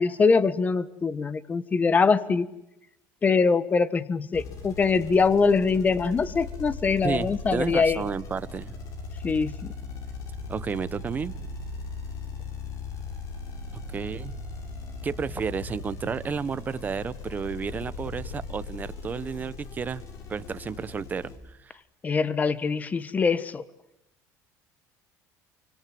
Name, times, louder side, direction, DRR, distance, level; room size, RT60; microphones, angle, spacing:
voice 1, 0.0-2.5 3.2-8.0 9.2-9.7 22.0-23.6, left 4 dB, 20° left, 16 dB, 1.4 m, -23 dB
sound 1, 4.3-21.4, left 3 dB, 50° left, 6.9 m, -38 dB
voice 2, 7.0-8.7 10.5-11.3 13.9-14.3 15.0-20.0 20.3-21.7, right 6 dB, 25° right, 14 dB, 1.2 m, -32 dB
29.0 x 25.0 x 7.8 m, 0.88 s
cardioid pair, 140°, 7 cm